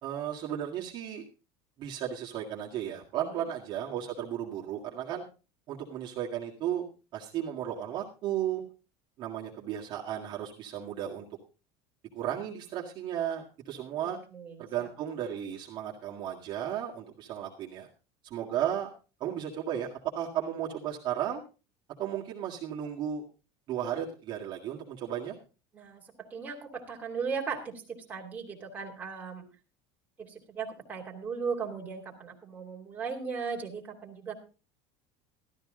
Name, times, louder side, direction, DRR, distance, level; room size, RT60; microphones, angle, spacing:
voice 1, 0.0-1.2 1.8-5.2 5.7-6.9 7.1-8.6 9.2-11.3 12.1-14.2 14.6-17.9 18.2-18.9 19.2-21.4 22.0-23.2 23.7-25.3, right 10 dB, 35° right, -4 dB, 1.9 m, -34 dB
voice 2, 14.0-14.9 25.7-26.0 26.3-29.4 30.2-34.3, right 5 dB, 10° right, -2 dB, 2.8 m, -37 dB
13.0 x 13.0 x 3.8 m, 0.33 s
cardioid pair, 165°, 13 cm